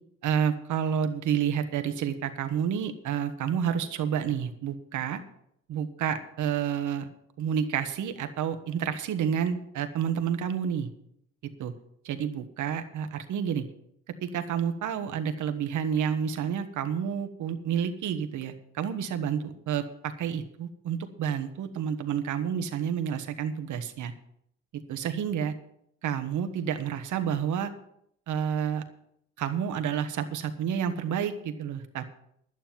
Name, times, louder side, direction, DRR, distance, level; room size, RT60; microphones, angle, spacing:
voice 1, 0.2-5.2 5.7-7.1 7.4-10.9 11.4-11.7 12.0-13.6 14.2-24.1 24.7-25.5 26.0-27.7 28.3-28.8 29.4-32.1, right 8 dB, 75° right, 8 dB, 1.4 m, -29 dB
11.5 x 9.5 x 5.9 m, 0.72 s
cardioid pair, 90°, 30 cm